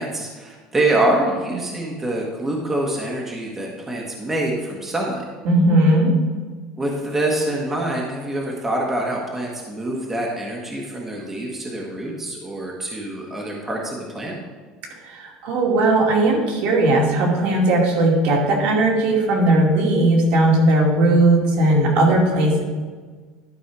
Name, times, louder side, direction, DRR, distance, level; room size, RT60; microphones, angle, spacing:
voice 1, 0.0-5.2 6.8-14.3, right 1 dB, 15° right, -2 dB, 1.4 m, -25 dB
voice 2, 5.4-6.1 15.1-22.6, right 1 dB, 60° right, -1 dB, 2.3 m, -17 dB
11.5 x 5.5 x 4.8 m, 1.5 s
cardioid pair, 150°, 2 cm